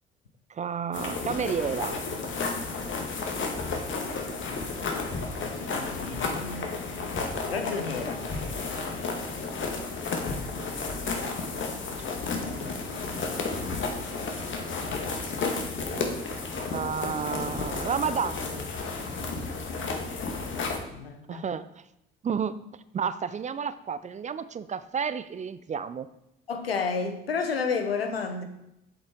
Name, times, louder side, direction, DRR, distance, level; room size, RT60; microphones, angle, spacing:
voice 1, 0.5-2.0 12.3-12.9 13.8-13.9 16.0-16.1 16.7-18.7 21.3-21.7 22.2-22.5 22.9-26.1, right 6 dB, 25° right, 15 dB, 0.5 m, -31 dB
sound 1, 0.9-20.8, left 4 dB, 40° left, 1.6 m, -32 dB
voice 2, 5.7-8.2 20.0-20.4 20.9-21.4 26.5-28.4, left 5 dB, 85° left, 6 dB, 0.9 m, -32 dB
7.9 x 7.8 x 3.6 m, 0.85 s
figure-of-eight pair, 50°, 29 cm